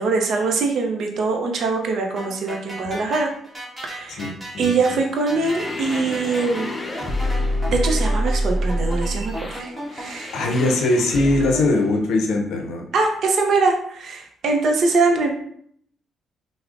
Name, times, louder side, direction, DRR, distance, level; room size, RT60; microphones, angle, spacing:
voice 1, 0.0-3.3 3.8-4.3 4.6-6.7 7.7-10.8 11.5-11.7 12.9-15.3, right 3 dB, 65° right, 3 dB, 0.5 m, -23 dB
sound 1, 2.2-10.7, right 1 dB, 20° right, 1.2 m, -36 dB
voice 2, 4.2-4.7 10.3-12.9, left 2 dB, 80° left, 2 dB, 0.5 m, -21 dB
sound 2, 5.3-11.7, equal, 30° left, 0.5 m, -26 dB
4.8 x 2.0 x 2.4 m, 0.66 s
cardioid pair, 90°, 0 cm